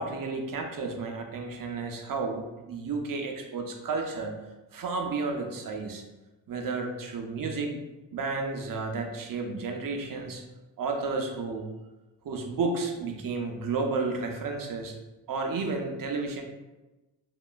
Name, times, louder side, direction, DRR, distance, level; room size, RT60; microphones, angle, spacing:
voice 1, 0.0-4.4 4.7-6.0 6.5-7.8 8.1-10.4 10.8-11.7 12.2-14.9 15.3-16.4, right 3 dB, 55° right, 3 dB, 0.5 m, -32 dB
2.9 x 2.2 x 2.3 m, 1.1 s
wide cardioid pair, 90°, 42 cm